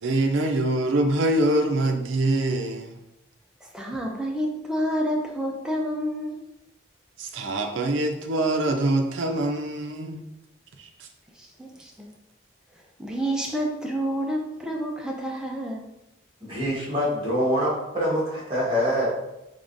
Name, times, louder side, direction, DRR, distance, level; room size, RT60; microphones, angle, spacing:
voice 1, 0.0-3.0 4.0-4.2 7.2-10.2 10.8-11.1, right 1 dB, 80° right, 4 dB, 0.5 m, -24 dB
voice 2, 3.6-6.4 11.4-12.1 13.0-15.9, equal, 5° right, -1 dB, 0.4 m, -29 dB
voice 3, 16.4-19.1, equal, 25° right, -7 dB, 1.3 m, -25 dB
3.6 x 3.4 x 2.6 m, 0.91 s
head